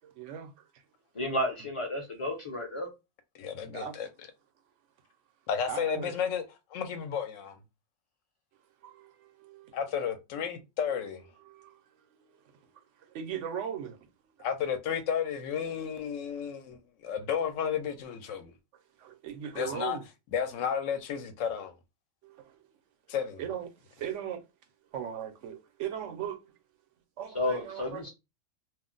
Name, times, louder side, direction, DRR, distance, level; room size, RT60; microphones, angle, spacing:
voice 1, 0.0-0.8 3.7-4.1 5.7-6.1 8.8-9.8 11.4-11.8 12.2-12.4 13.1-14.1 19.0-20.0 22.2-22.6 23.4-24.4 24.9-26.5 27.2-28.1, right 9 dB, 75° right, 0.9 m, -39 dB
voice 2, 1.1-2.9 27.3-28.1, left 1 dB, 35° left, 0.5 m, -32 dB
voice 3, 3.4-4.1 5.5-6.4 6.7-7.5 9.7-11.2 14.4-18.5 19.6-20.0 20.3-21.7 23.1-23.4, left 7 dB, 85° left, 1.0 m, -32 dB
2.5 x 2.0 x 3.7 m
omnidirectional pair, 1.3 m